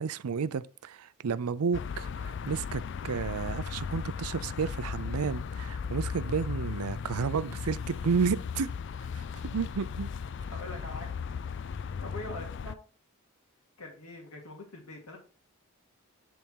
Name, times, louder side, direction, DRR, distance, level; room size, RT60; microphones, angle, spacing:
voice 1, 0.0-8.7 9.1-10.1, right 5 dB, 85° right, 0.5 m, -32 dB
sound 1, 1.7-12.8, left 6 dB, 55° left, 0.3 m, -36 dB
voice 2, 10.5-11.1 12.0-12.8 13.8-15.2, left 1 dB, 85° left, 2.0 m, -43 dB
10.0 x 3.6 x 4.5 m
head